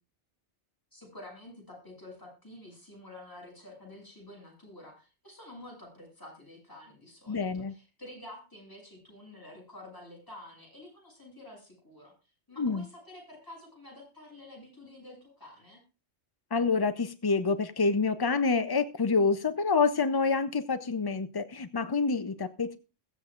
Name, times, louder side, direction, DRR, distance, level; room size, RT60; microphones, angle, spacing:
voice 1, 0.9-12.1 12.5-15.8, left 1 dB, 20° left, -2 dB, 7.1 m, -49 dB
voice 2, 7.3-7.7 12.6-12.9 16.5-22.8, left 4 dB, 40° left, 10 dB, 0.3 m, -27 dB
21.5 x 7.4 x 2.4 m, 0.32 s
omnidirectional pair, 1.2 m